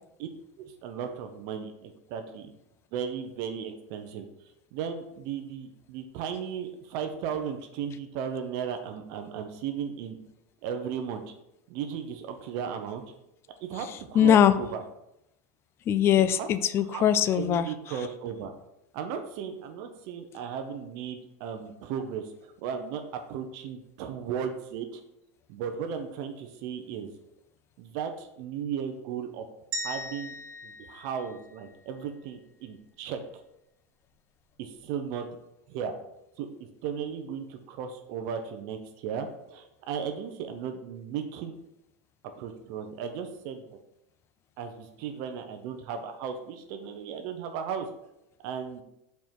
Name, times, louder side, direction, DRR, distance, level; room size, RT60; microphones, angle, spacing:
voice 1, 0.6-2.5 2.9-4.3 4.7-10.2 10.6-11.2 11.7-13.0 13.6-14.8 16.2-16.5 16.8-17.1 17.4-18.5 18.9-23.0 23.3-25.0 25.5-27.1 27.8-29.5 29.8-30.4 30.6-33.2 34.6-35.3 35.7-35.9 36.4-36.5 36.8-41.6 42.4-43.7 44.6-47.9 48.4-48.8, right 7 dB, 55° right, 6 dB, 0.7 m, -35 dB
voice 2, 14.1-14.5 15.9-17.7, left 9 dB, 30° left, 13 dB, 0.4 m, -21 dB
sound 1, 29.7-32.0, right 1 dB, 75° right, 1.1 m, -38 dB
5.3 x 4.5 x 4.5 m, 0.85 s
supercardioid pair, 135°, 8 cm